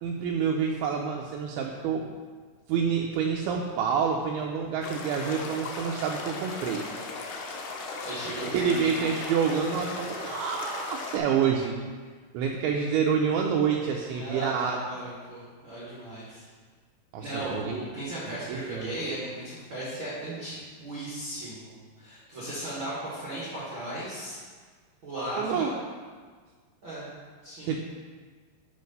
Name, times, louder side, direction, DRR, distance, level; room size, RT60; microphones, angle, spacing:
voice 1, 0.0-2.1 2.7-6.9 8.5-11.8 12.3-14.8 17.1-17.8 18.3-18.9 25.4-25.7 27.6-27.8, right 6 dB, 80° right, 0 dB, 2.4 m, -28 dB
sound 1, 4.8-11.2, left 3 dB, 85° left, 1.8 m, -37 dB
voice 2, 8.0-9.0 14.0-16.5 17.2-24.4 25.0-25.7 26.8-27.1 27.4-27.7, right 1 dB, 60° right, -8 dB, 1.3 m, -36 dB
6.4 x 5.5 x 5.3 m, 1.6 s
omnidirectional pair, 4.7 m